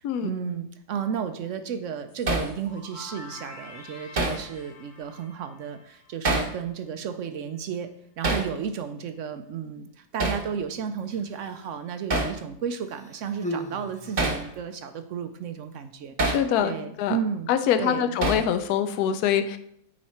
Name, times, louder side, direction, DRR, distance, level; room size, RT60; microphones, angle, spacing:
voice 1, 0.0-7.9 8.2-16.4 16.6-17.5 17.8-18.2, right 7 dB, 70° right, 9 dB, 0.7 m, -33 dB
sound 1, 2.1-6.8, left 2 dB, 35° left, 1.8 m, -47 dB
Hammer, 2.3-2.5 4.2-4.4 6.2-6.6 8.2-8.5 10.2-10.5 12.1-12.4 14.2-14.4 16.2-16.5 18.2-18.5, right 2 dB, 35° right, 0.8 m, -25 dB
Human voice, 11.0-11.9 12.8-14.7 15.6-15.8, equal, 10° left, 0.5 m, -38 dB
voice 2, 16.3-17.2 17.5-19.6, left 9 dB, 75° left, 9 dB, 1.1 m, -24 dB
9.2 x 4.3 x 4.3 m, 0.73 s
omnidirectional pair, 1.7 m